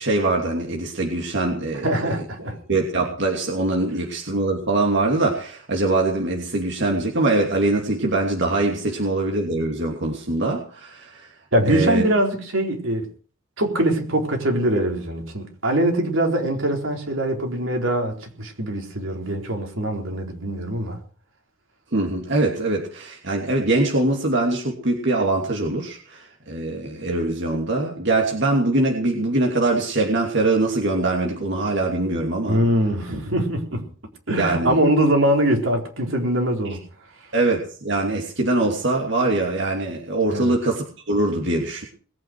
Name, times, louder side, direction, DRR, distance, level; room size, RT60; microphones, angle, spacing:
voice 1, 0.0-1.9 2.7-11.3 11.7-12.0 21.9-32.6 34.4-34.8 37.3-41.8, right 2 dB, 65° right, 2.9 m, -23 dB
voice 2, 1.8-2.6 11.5-13.1 13.6-21.0 32.5-33.9 34.3-36.8 40.3-40.6, right 1 dB, 85° right, 4.2 m, -22 dB
21.0 x 9.3 x 6.1 m
head